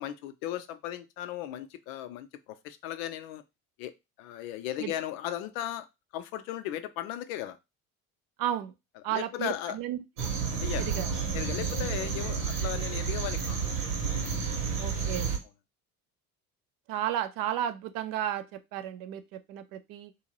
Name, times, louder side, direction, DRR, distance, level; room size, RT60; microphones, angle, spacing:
voice 1, 0.0-3.4 3.8-3.9 4.2-5.9 6.1-7.6 9.1-9.8 10.6-10.9 11.3-13.6, left 12 dB, 65° left, 0.5 m, -36 dB
voice 2, 8.4-8.7 9.0-10.3 10.8-11.1 14.8-15.3 16.9-20.1, right 11 dB, 50° right, 0.5 m, -33 dB
sound 1, 10.2-15.4, right 6 dB, 85° right, 1.1 m, -31 dB
2.7 x 2.5 x 2.9 m
hypercardioid pair, 60°, 45 cm